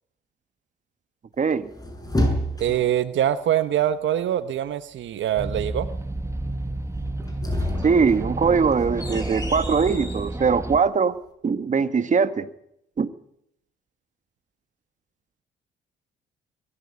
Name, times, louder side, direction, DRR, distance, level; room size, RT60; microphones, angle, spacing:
voice 1, 1.4-1.7 7.8-11.2 11.4-12.5 13.0-13.1, right 5 dB, 40° right, 1.6 m, -21 dB
sound 1, 1.5-3.0 7.1-10.3, left 1 dB, 20° left, 6.6 m, -29 dB
voice 2, 2.6-5.9, right 11 dB, 70° right, 1.2 m, -24 dB
sound 2, 5.4-10.8, right 2 dB, 15° right, 1.9 m, -30 dB
22.5 x 14.0 x 9.7 m
cardioid pair, 90°, 20 cm